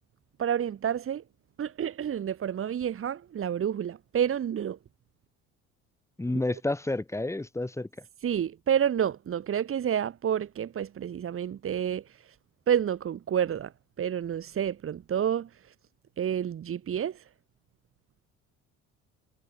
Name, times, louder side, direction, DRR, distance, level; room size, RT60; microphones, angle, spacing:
voice 1, 0.4-1.2 1.6-4.8 6.3-6.6 8.2-12.4 12.7-15.7 16.2-17.3, right 9 dB, 45° right, 3.9 m, -29 dB
voice 2, 6.2-7.9, left 2 dB, 10° left, 3.0 m, -30 dB
cardioid pair, 105°, 30 cm